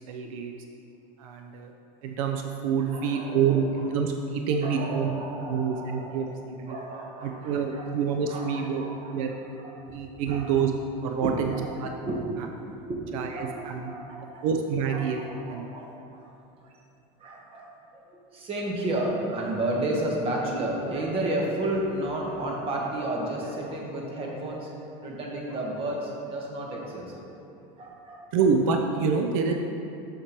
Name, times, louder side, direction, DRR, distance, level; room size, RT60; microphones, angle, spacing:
voice 1, 0.1-0.5 1.2-1.7 2.0-6.2 6.6-6.8 7.2-9.3 9.9-10.7 11.0-11.5 11.8-11.9 13.1-13.9 14.4-15.2 15.5-15.6 28.3-29.6, right 6 dB, 85° right, 3 dB, 0.5 m, -27 dB
voice 2, 2.9-3.6 4.6-6.3 6.7-7.9 8.3-9.2 9.6-9.7 10.3-10.4 11.2-11.6 12.0-12.2 12.8-14.5 14.9-16.3 16.6-16.7 17.2-27.2 27.8-28.2, right 1 dB, 35° right, -2 dB, 1.3 m, -32 dB
7.3 x 6.7 x 3.0 m, 2.7 s
supercardioid pair, 140°, 17 cm